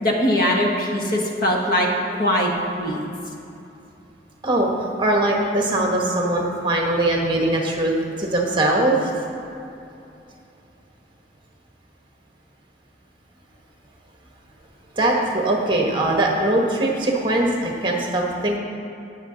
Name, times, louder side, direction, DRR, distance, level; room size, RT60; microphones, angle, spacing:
voice 1, 0.0-1.9 2.2-2.5 2.8-3.0, left 1 dB, 55° left, 0 dB, 1.4 m, -21 dB
voice 2, 5.0-7.9 8.2-9.0 15.0-18.6, right 1 dB, 25° right, 0 dB, 1.3 m, -21 dB
18.0 x 6.3 x 3.9 m, 2.8 s
head